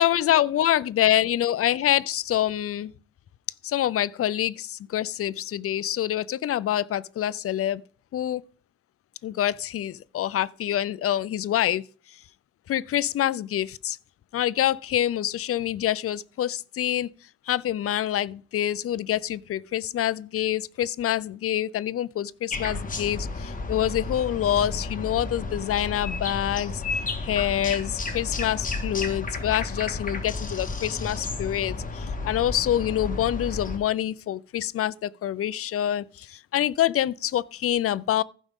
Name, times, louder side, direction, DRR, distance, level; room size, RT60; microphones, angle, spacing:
voice 1, 0.0-2.9 3.6-7.8 8.1-8.4 9.2-11.8 12.7-14.0 14.3-17.1 17.5-26.8 27.2-38.2, left 11 dB, 50° left, 0.5 m, -26 dB
sound 1, 22.5-33.8, left 3 dB, 25° left, 1.7 m, -32 dB
15.0 x 5.2 x 3.7 m
cardioid pair, 90°, 30 cm